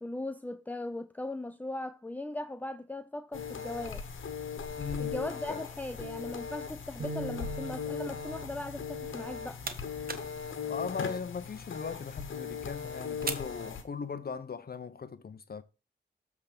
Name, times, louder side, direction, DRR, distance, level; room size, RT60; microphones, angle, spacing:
voice 1, 0.0-4.0 5.0-9.6, left 2 dB, 10° left, 0.5 m, -38 dB
sound 1, 3.3-13.8, left 6 dB, 85° left, 1.1 m, -39 dB
voice 2, 4.8-5.2 5.5-5.6 10.7-15.6, left 5 dB, 50° left, 0.6 m, -38 dB
sound 2, 7.0-13.2, right 5 dB, 75° right, 1.4 m, -47 dB
sound 3, 13.1-14.4, right 4 dB, 50° right, 1.1 m, -44 dB
7.7 x 3.5 x 6.5 m
cardioid pair, 55°, 20 cm